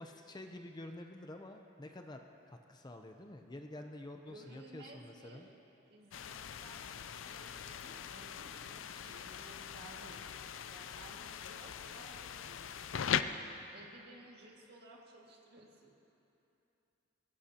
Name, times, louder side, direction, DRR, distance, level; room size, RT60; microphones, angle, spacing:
voice 1, 0.0-2.2 2.5-5.5, left 1 dB, 20° left, 4 dB, 0.6 m, -48 dB
voice 2, 4.2-5.5 5.9-10.2 10.7-13.3 13.7-15.9, right 2 dB, 55° right, -2 dB, 2.0 m, -56 dB
sound 1, 6.1-13.2, left 8 dB, 85° left, 0.5 m, -41 dB
22.5 x 16.5 x 2.9 m, 2.8 s
head